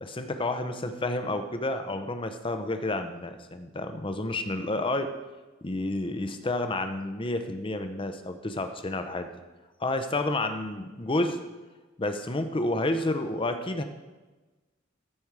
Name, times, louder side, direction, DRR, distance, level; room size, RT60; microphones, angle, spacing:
voice 1, 0.0-5.1 5.6-9.3 9.8-11.4 12.0-13.8, left 2 dB, 25° left, 8 dB, 0.7 m, -30 dB
14.5 x 5.2 x 4.7 m, 1.2 s
head